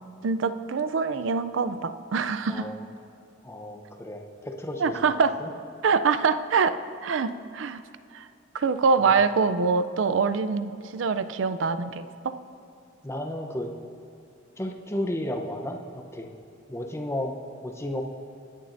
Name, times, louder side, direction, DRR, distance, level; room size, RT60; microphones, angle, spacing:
voice 1, 0.2-2.7 4.8-5.4 5.8-7.8 8.1-8.3 8.5-12.4, right 5 dB, 75° right, 12 dB, 0.5 m, -25 dB
voice 2, 2.5-2.8 3.4-5.0 5.4-5.5 9.0-9.2 13.0-13.7 14.6-15.8 16.1-16.3 16.7-17.3 17.6-18.0, left 1 dB, 15° left, 3 dB, 0.8 m, -33 dB
23.0 x 10.0 x 2.6 m, 2.6 s
head